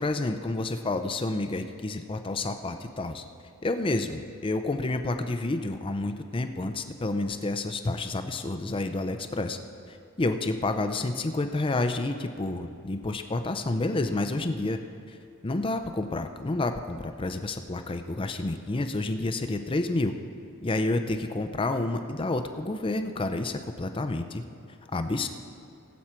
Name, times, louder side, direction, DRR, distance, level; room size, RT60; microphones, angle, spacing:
voice 1, 0.0-3.2 3.6-9.6 9.9-14.8 15.1-15.2 15.4-20.2 20.6-24.4 24.9-25.3, left 2 dB, 25° left, 7 dB, 0.5 m, -29 dB
20.5 x 7.2 x 4.4 m, 2.3 s
head